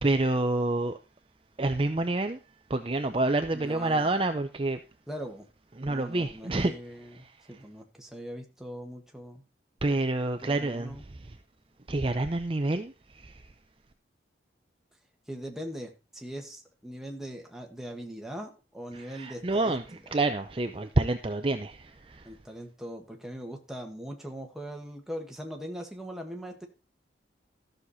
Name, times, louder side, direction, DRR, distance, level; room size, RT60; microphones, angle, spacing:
voice 1, 0.0-1.0 1.6-2.4 2.7-4.8 5.8-6.7 9.8-11.0 11.9-13.4 18.9-22.3, right 2 dB, 30° right, 0.6 m, -28 dB
voice 2, 3.5-4.1 5.1-5.5 5.9-9.4 10.4-11.0 15.3-20.1 22.2-26.7, equal, ahead, 1.6 m, -41 dB
13.5 x 6.6 x 4.2 m
head